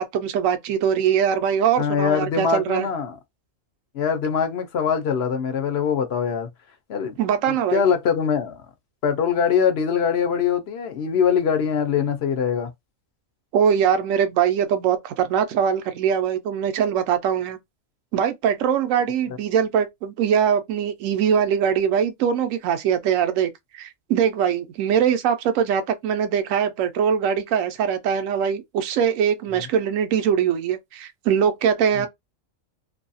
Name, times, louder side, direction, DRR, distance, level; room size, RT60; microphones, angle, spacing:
voice 1, 0.0-2.9 7.2-7.8 13.5-17.6 18.1-32.1, right 8 dB, 80° right, 0.9 m, -22 dB
voice 2, 1.8-3.2 3.9-6.5 6.9-7.2 7.5-8.6 9.0-12.7 32.0-32.1, left 7 dB, 60° left, 0.8 m, -23 dB
2.6 x 2.3 x 2.5 m
omnidirectional pair, 1.4 m